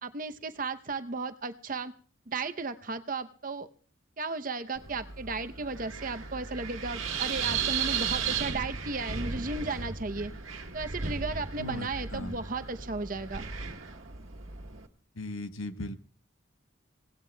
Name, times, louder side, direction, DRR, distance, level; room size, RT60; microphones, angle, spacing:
voice 1, 0.0-1.9 2.3-3.7 4.2-10.3 10.7-13.4, right 3 dB, 40° right, 9 dB, 0.7 m, -35 dB
Wind, 4.7-14.9, right 6 dB, 85° right, 1.5 m, -35 dB
voice 2, 11.6-12.3 15.1-16.0, left 1 dB, 90° left, 8 dB, 1.0 m, -38 dB
26.0 x 17.5 x 2.3 m, 0.42 s
head